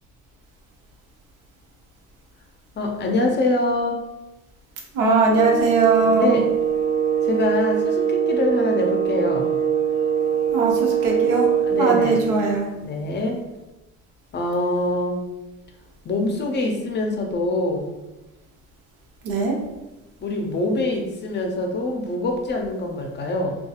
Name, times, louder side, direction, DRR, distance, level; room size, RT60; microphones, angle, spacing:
voice 1, 2.8-4.0 6.0-6.4 7.2-9.5 11.7-12.3 12.8-13.4 14.3-15.2 16.0-17.9 20.2-23.6, left 2 dB, 35° left, 2 dB, 0.5 m, -24 dB
voice 2, 4.9-6.4 10.5-11.5 11.8-12.7 19.2-19.6, right 4 dB, 75° right, -1 dB, 0.8 m, -20 dB
sound 1, 5.3-12.3, right 7 dB, 30° right, 1.0 m, -22 dB
2.6 x 2.3 x 2.3 m, 1.0 s
supercardioid pair, 85°, 31 cm